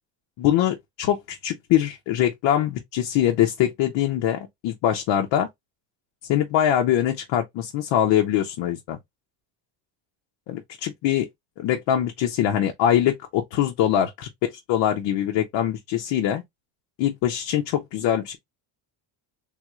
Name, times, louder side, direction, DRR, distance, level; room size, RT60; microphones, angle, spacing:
voice 1, 0.4-5.5 6.3-9.0 10.5-11.3 11.6-14.3 14.7-16.4 17.0-18.4, left 11 dB, 60° left, 0.7 m, -23 dB
3.5 x 2.4 x 2.9 m
cardioid pair, 165°, 50 cm